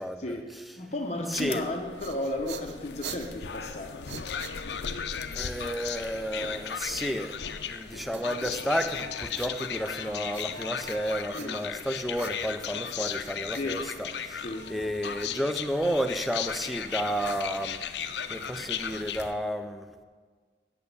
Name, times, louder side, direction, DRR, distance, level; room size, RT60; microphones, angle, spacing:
voice 1, 0.0-0.6 1.3-1.6 5.3-7.4 7.7-19.9, equal, ahead, 8 dB, 0.4 m, -32 dB
voice 2, 0.8-4.4 11.3-11.6 13.5-13.8 14.4-14.7, left 1 dB, 40° left, 2 dB, 0.7 m, -34 dB
sound 1, 1.3-19.3, left 7 dB, 75° left, 0.5 m, -36 dB
sound 2, 1.7-5.1 8.1-10.0 10.3-11.8 12.1-14.4, right 8 dB, 75° right, 0.5 m, -46 dB
9.0 x 6.8 x 6.7 m, 1.5 s
head